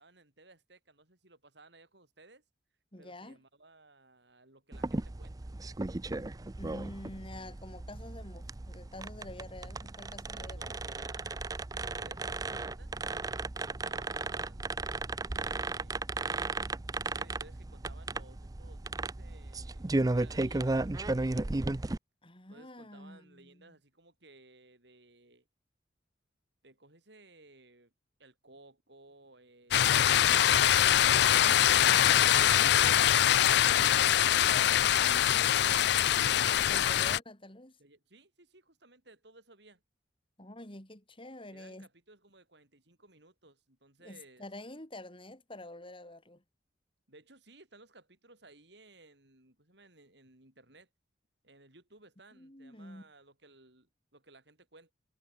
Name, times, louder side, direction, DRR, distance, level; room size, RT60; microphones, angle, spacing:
voice 1, 0.0-2.4 3.0-5.5 10.3-13.0 13.5-16.0 17.1-21.6 22.5-25.4 26.6-27.9 28.2-31.2 37.8-39.8 41.5-44.5 47.1-50.9 51.4-54.9, right 2 dB, 65° right, 7.3 m, -59 dB
voice 2, 2.9-3.4 6.6-10.8 22.2-23.7 31.7-32.8 36.7-37.8 40.4-41.9 44.0-46.4 52.4-53.1, left 1 dB, 30° left, 6.5 m, -47 dB
sound 1, 4.7-22.0, right 2 dB, 20° right, 0.5 m, -35 dB
sound 2, 29.7-37.2, left 11 dB, 65° left, 0.4 m, -23 dB
head